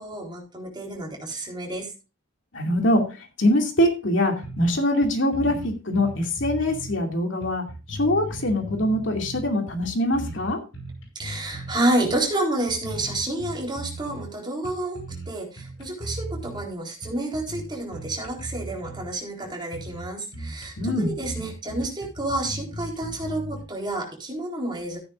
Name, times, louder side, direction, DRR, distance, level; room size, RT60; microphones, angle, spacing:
voice 1, 0.0-1.9 11.2-25.0, right 1 dB, 25° right, -1 dB, 4.0 m, -29 dB
voice 2, 2.5-10.6 20.8-21.1, left 1 dB, 70° left, 3 dB, 2.6 m, -23 dB
sound 1, 4.4-4.8 5.0-5.1 5.3-7.0 7.4-9.5 9.8-11.7 12.1-12.3 12.7-14.3 14.6-15.3 15.6-16.6 17.0-19.1 19.4-19.5 19.7-20.1 20.3-23.6, right 1 dB, 90° left, 5.8 m, -37 dB
15.0 x 9.4 x 2.6 m, 0.30 s
head